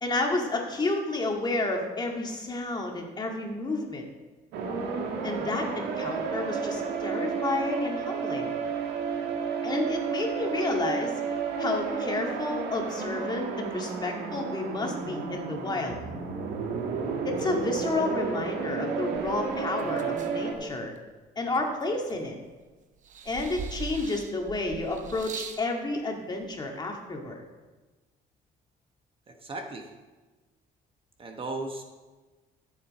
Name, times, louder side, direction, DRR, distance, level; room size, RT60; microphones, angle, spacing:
voice 1, 0.0-4.1 5.2-8.5 9.6-11.2 11.6-16.0 17.2-20.9 21.4-22.4 23.2-27.4, left 2 dB, 25° left, 1 dB, 2.0 m, -31 dB
sound 1, 4.5-20.5, right 5 dB, 85° right, 1.7 m, -32 dB
sound 2, 19.2-21.0 21.5-22.6 23.0-25.7 26.6-26.7, right 6 dB, 50° right, 0.9 m, -41 dB
voice 2, 29.3-29.9 31.2-31.8, right 2 dB, 30° right, 4 dB, 1.2 m, -36 dB
14.5 x 7.4 x 4.2 m, 1.3 s
cardioid pair, 110°, 17 cm